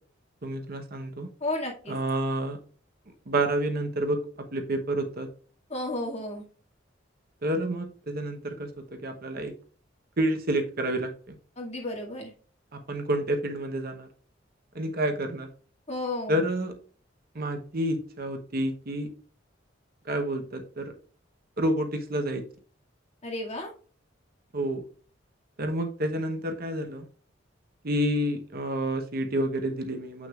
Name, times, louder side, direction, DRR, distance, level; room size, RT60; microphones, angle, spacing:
voice 1, 0.4-1.3 1.9-2.6 3.3-4.2 4.5-5.3 7.4-9.5 10.2-11.3 12.9-14.1 14.7-15.5 16.3-16.8 17.3-19.1 20.1-20.8 21.6-22.4 24.5-24.8 25.6-27.1 27.8-30.3, right 1 dB, 55° right, 5 dB, 1.0 m, -29 dB
voice 2, 1.4-2.0 5.7-6.4 11.6-12.3 15.9-16.4 23.2-23.7, left 1 dB, 35° left, -2 dB, 2.1 m, -32 dB
7.2 x 6.1 x 2.4 m, 0.41 s
head